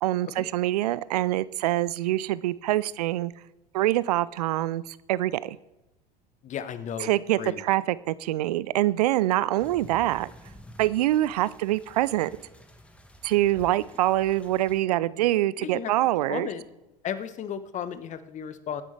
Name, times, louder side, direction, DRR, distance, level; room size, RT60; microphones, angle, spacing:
voice 1, 0.0-3.3 3.7-5.6 7.0-10.3 10.8-12.3 13.2-16.5, right 15 dB, 65° right, 19 dB, 0.6 m, -25 dB
voice 2, 6.4-7.1 7.4-7.6 15.6-15.9 16.3-16.6 17.0-18.8, left 8 dB, 35° left, 13 dB, 1.2 m, -34 dB
sound 1, 9.6-14.8, equal, 5° left, 1.4 m, -50 dB
22.0 x 10.0 x 3.4 m, 0.96 s
figure-of-eight pair, 80°, 21 cm